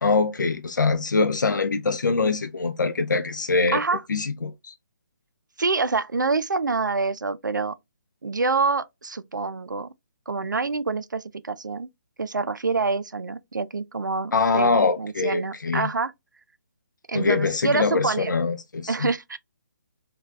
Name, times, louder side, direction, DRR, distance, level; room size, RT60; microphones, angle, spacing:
voice 1, 0.0-3.8 4.1-4.7 14.3-15.9 17.1-19.1, left 4 dB, 80° left, 0.4 m, -23 dB
voice 2, 5.6-7.7 8.2-9.9 10.3-11.9 12.2-16.1 17.1-18.3 18.9-19.4, right 4 dB, 80° right, 0.4 m, -26 dB
3.8 x 2.3 x 2.4 m
figure-of-eight pair, 140°, 10 cm